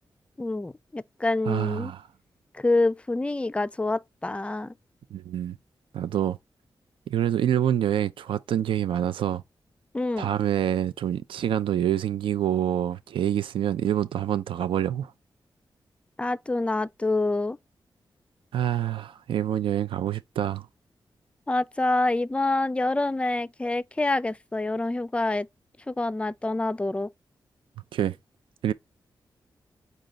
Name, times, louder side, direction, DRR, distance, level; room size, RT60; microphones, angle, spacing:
voice 1, 0.4-1.9 2.5-4.7 9.9-10.3 16.2-17.6 21.5-25.5 25.9-27.1, left 2 dB, 15° left, 0.3 m, -26 dB
voice 2, 1.5-2.0 5.1-5.6 5.9-6.4 7.1-9.4 10.2-15.1 18.5-20.7 27.9-28.2 28.6-28.7, right 10 dB, 90° right, 0.3 m, -26 dB
5.0 x 2.3 x 3.7 m
cardioid pair, 55°, 9 cm